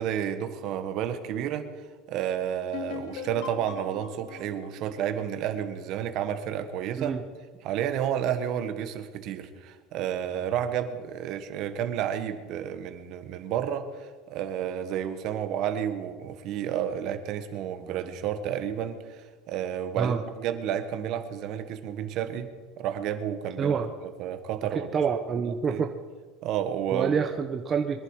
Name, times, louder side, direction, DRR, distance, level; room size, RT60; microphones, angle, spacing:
voice 1, 0.0-1.7 2.1-7.1 7.6-22.5 22.8-24.9 25.4-25.8 26.4-27.2, right 9 dB, 50° right, 9 dB, 1.5 m, -31 dB
sound 1, 2.7-6.3, left 8 dB, 80° left, 2.3 m, -41 dB
voice 2, 23.6-23.9 24.7-25.9 26.9-28.0, right 6 dB, 25° right, 4 dB, 0.9 m, -27 dB
23.5 x 11.0 x 4.9 m, 1.4 s
supercardioid pair, 140°, 0 cm